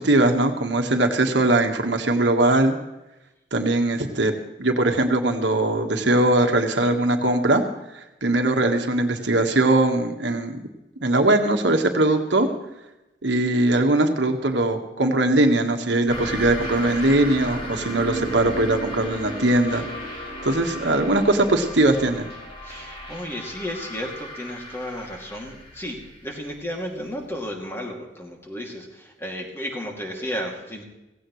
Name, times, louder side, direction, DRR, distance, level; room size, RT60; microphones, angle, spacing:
voice 1, 0.0-2.8 3.5-4.3 4.6-7.6 7.9-10.7 11.0-12.5 13.2-19.8 20.4-22.3, right 2 dB, 85° right, 4 dB, 1.5 m, -20 dB
sound 1, 16.1-27.3, equal, 30° left, 3.4 m, -35 dB
voice 2, 22.6-30.8, equal, 15° left, 0 dB, 2.6 m, -33 dB
16.5 x 16.0 x 3.2 m, 0.97 s
head